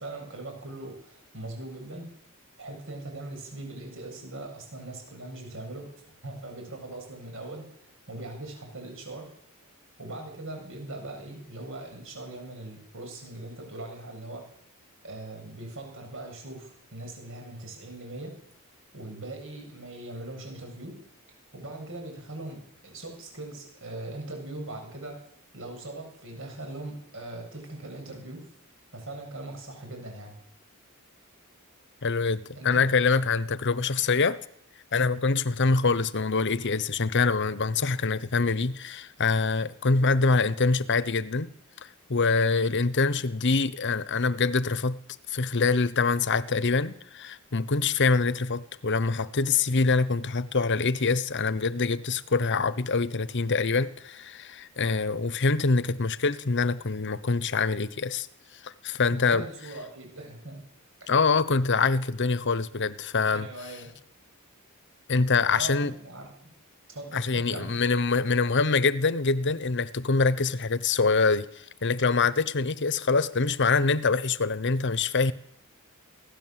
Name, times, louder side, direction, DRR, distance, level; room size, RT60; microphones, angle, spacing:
voice 1, 0.0-2.2 2.6-5.9 6.2-7.7 8.1-9.3 10.0-14.5 15.0-18.4 18.9-21.0 21.5-25.2 25.5-28.5 28.9-30.4 32.5-33.1 59.2-60.6 63.3-63.9 65.5-66.5 66.9-67.7, right 2 dB, 65° right, 7.9 m, -40 dB
voice 2, 32.0-34.4 34.9-41.5 41.8-45.0 45.3-58.3 58.6-59.4 61.1-63.5 65.1-65.9 67.1-75.3, left 4 dB, 55° left, 1.0 m, -25 dB
24.0 x 16.5 x 7.7 m
head